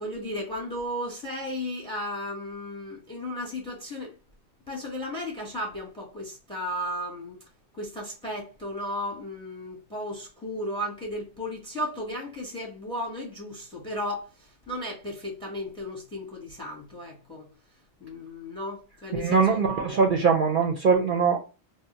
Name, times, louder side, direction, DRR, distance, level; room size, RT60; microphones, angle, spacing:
voice 1, 0.0-4.2 4.7-7.4 7.7-17.5 18.0-19.6, left 1 dB, 5° left, 0.7 m, -35 dB
voice 2, 19.1-21.4, right 5 dB, 60° right, 0.6 m, -22 dB
2.6 x 2.1 x 3.9 m
omnidirectional pair, 1.1 m